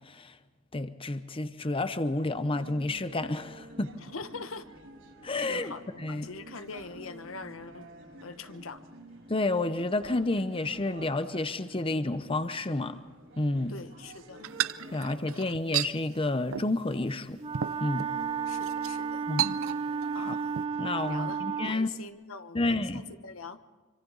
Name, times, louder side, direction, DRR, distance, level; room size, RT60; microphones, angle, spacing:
voice 1, 0.7-3.9 5.2-6.3 9.3-13.0 13.4-13.8 14.9-17.4 17.8-18.1 19.3-19.6 20.2-20.4 20.8-21.9 22.5-23.0, left 2 dB, 25° left, 11 dB, 0.8 m, -30 dB
sound 1, 2.1-21.3, right 1 dB, 65° right, 5.0 m, -50 dB
voice 2, 4.1-4.6 5.5-7.9 8.2-8.8 13.7-14.5 15.3-15.4 18.5-19.2 20.1-20.5 20.9-23.6, left 4 dB, 85° left, 10 dB, 1.1 m, -43 dB
sound 2, 14.4-15.9 16.5-16.8 17.1-17.2 17.5-18.1 18.6-18.9 19.4-20.0 20.3-20.7, right 11 dB, 90° right, 0.6 m, -32 dB
Wind instrument woodwind instrument, 17.4-21.8, right 6 dB, 30° right, 0.7 m, -33 dB
26.5 x 25.0 x 4.0 m, 1.5 s
head